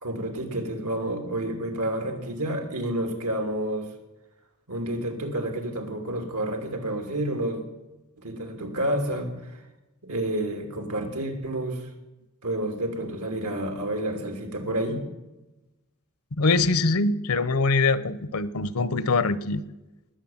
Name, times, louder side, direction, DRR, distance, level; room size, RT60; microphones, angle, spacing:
voice 1, 0.0-3.9 4.7-7.6 8.2-9.6 10.0-11.9 12.4-15.0, right 1 dB, 90° right, 5 dB, 3.1 m, -29 dB
voice 2, 16.4-19.6, left 3 dB, 75° left, 16 dB, 0.8 m, -23 dB
20.0 x 8.2 x 7.3 m, 1.0 s
head